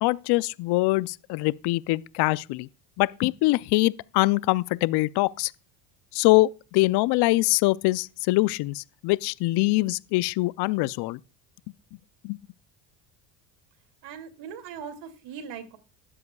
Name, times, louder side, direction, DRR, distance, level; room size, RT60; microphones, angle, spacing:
voice 1, 0.0-2.7 3.0-5.5 6.1-11.2 12.2-12.4, left 21 dB, 55° left, 0.6 m, -23 dB
voice 2, 14.0-15.8, right 7 dB, 60° right, 2.6 m, -40 dB
20.5 x 7.8 x 2.3 m
supercardioid pair, 80°, 47 cm